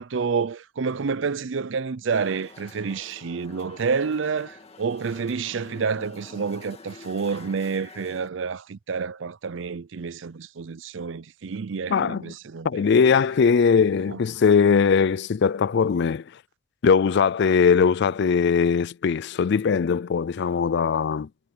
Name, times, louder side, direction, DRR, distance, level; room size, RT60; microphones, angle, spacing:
voice 1, 0.0-12.9 14.1-14.2, right 5 dB, 65° right, 0.5 m, -29 dB
sound 1, 2.1-8.3, left 3 dB, 30° left, 2.1 m, -47 dB
voice 2, 11.9-12.2 12.6-16.2 16.8-21.3, left 6 dB, 55° left, 0.4 m, -20 dB
head